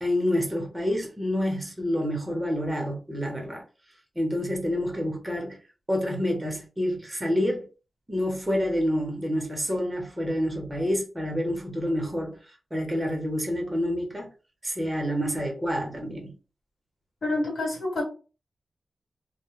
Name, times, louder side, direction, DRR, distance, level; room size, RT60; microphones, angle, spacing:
voice 1, 0.0-3.6 4.2-5.6 5.9-7.6 8.1-12.4 12.7-14.3 14.6-16.3, equal, 15° right, 0.8 m, -28 dB
voice 2, 17.2-18.0, left 2 dB, 75° left, 1.4 m, -27 dB
2.2 x 2.1 x 2.9 m
wide cardioid pair, 125°, 0 cm